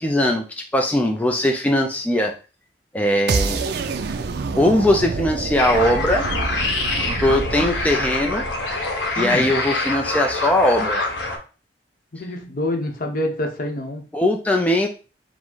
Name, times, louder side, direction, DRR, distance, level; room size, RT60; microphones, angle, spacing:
voice 1, 0.0-2.3 2.9-3.6 4.6-6.2 7.0-8.4 9.2-11.0 14.1-14.9, left 1 dB, 10° left, 0.4 m, -20 dB
sound 1, 3.3-9.3, right 4 dB, 65° right, 0.4 m, -27 dB
sound 2, 5.6-11.4, left 2 dB, 80° left, 1.0 m, -25 dB
voice 2, 9.2-9.5 12.2-14.0, left 1 dB, 55° left, 0.8 m, -26 dB
4.9 x 2.1 x 3.8 m
head